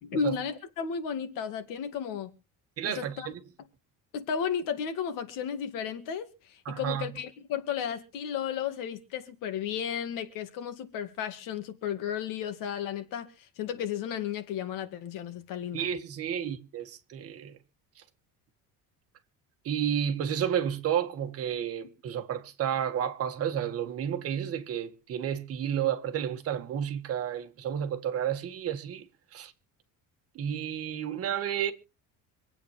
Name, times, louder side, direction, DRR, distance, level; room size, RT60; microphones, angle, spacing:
voice 1, 0.0-2.3 2.8-3.3 4.1-15.9, left 8 dB, 70° left, 2.1 m, -34 dB
voice 2, 2.8-3.4 6.6-7.1 15.7-17.6 19.6-29.5 30.3-31.7, right 9 dB, 45° right, 1.7 m, -31 dB
26.0 x 8.7 x 3.3 m
cardioid pair, 175°, 34 cm